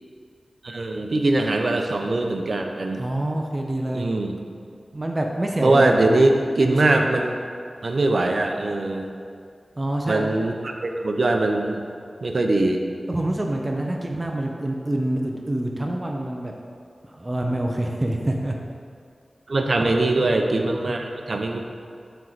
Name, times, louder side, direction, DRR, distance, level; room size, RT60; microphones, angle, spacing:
voice 1, 0.6-3.0 3.9-4.4 5.6-7.4 7.8-9.1 10.1-11.8 12.2-12.8 19.5-21.6, right 2 dB, 60° right, 3 dB, 0.8 m, -22 dB
voice 2, 3.0-4.1 4.9-6.3 6.6-7.1 9.8-10.3 13.1-16.5 17.0-18.5 19.8-19.9, right 1 dB, 25° right, 1 dB, 0.7 m, -26 dB
12.5 x 4.6 x 4.1 m, 2.2 s
wide cardioid pair, 90°, 0 cm